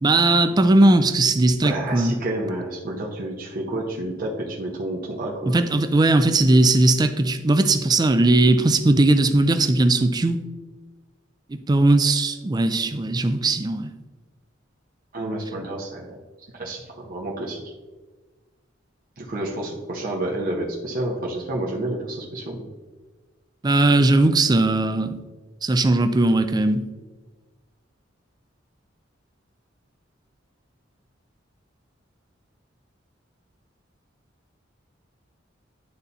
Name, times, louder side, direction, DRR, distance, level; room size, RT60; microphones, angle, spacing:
voice 1, 0.0-2.2 5.5-10.4 11.7-13.9 23.6-25.2 25.6-26.8, right 2 dB, 20° right, 9 dB, 0.4 m, -18 dB
voice 2, 1.6-5.6 15.1-16.2 16.5-17.7 19.2-22.7, right 1 dB, 50° right, -3 dB, 0.9 m, -30 dB
11.5 x 4.0 x 2.8 m, 1.3 s
head